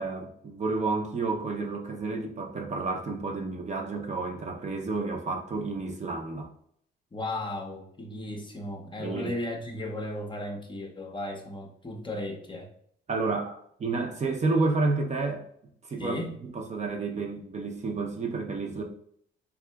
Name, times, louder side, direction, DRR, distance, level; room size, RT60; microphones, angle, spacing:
voice 1, 0.0-6.5 9.0-9.3 13.1-15.5 15.9-18.8, right 3 dB, 35° right, 0.5 m, -30 dB
voice 2, 7.1-12.7 16.0-16.4, left 1 dB, 25° left, 0.6 m, -35 dB
3.5 x 2.7 x 2.2 m
cardioid pair, 90°, 20 cm